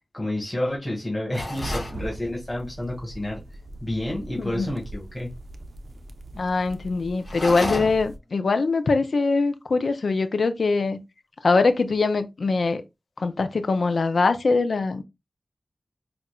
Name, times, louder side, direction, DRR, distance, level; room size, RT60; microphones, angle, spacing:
voice 1, 0.1-3.4 3.8-5.3, left 1 dB, 25° left, 1.9 m, -29 dB
sound 1, 1.3-2.0 7.2-8.2, left 1 dB, 60° left, 2.0 m, -31 dB
sound 2, 1.4-8.2, right 1 dB, 75° right, 0.6 m, -40 dB
voice 2, 4.4-4.7 6.4-11.0 11.4-12.8 13.2-15.0, left 3 dB, 80° left, 0.5 m, -22 dB
5.8 x 2.5 x 2.3 m
cardioid pair, 55°, 0 cm